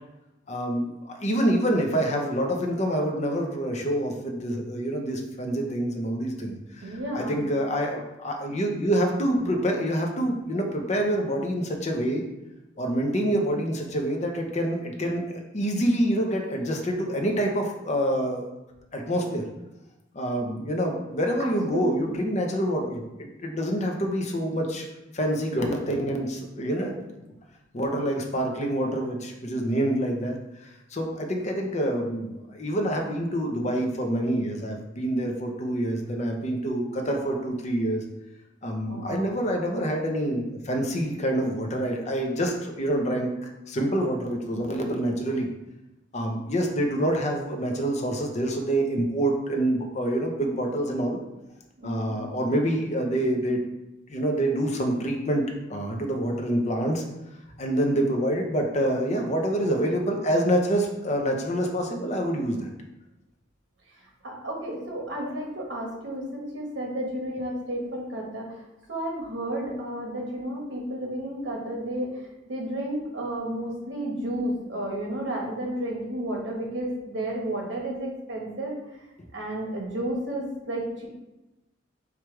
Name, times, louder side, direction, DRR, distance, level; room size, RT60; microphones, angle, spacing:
voice 1, 0.5-12.2 12.8-18.5 18.9-19.4 20.1-24.9 25.1-27.0 27.7-30.4 30.6-38.0 38.6-45.5 46.1-51.2 51.8-53.6 54.1-57.0 57.6-62.7, right 1 dB, 40° left, 2 dB, 0.7 m, -26 dB
voice 2, 6.8-7.4 21.4-22.1 38.8-39.3 51.8-52.2 64.2-68.6 68.9-72.2 72.4-78.8 79.3-81.0, right 1 dB, 70° right, -1 dB, 1.2 m, -32 dB
4.7 x 2.5 x 4.5 m, 0.98 s
head